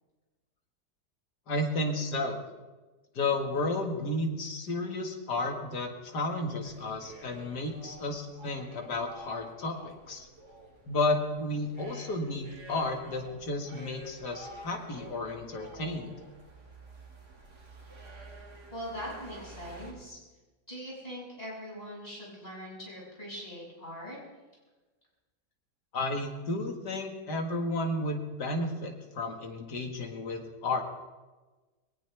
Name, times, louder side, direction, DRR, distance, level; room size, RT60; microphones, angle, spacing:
voice 1, 1.5-2.4 3.1-10.3 10.9-16.1 25.9-30.8, left 2 dB, 70° left, 3 dB, 2.5 m, -32 dB
sound 1, 6.6-19.9, right 2 dB, 65° right, 2.8 m, -49 dB
voice 2, 18.7-20.2 20.7-24.2, equal, 20° left, -5 dB, 7.1 m, -41 dB
20.5 x 19.0 x 3.5 m, 1.2 s
omnidirectional pair, 1.9 m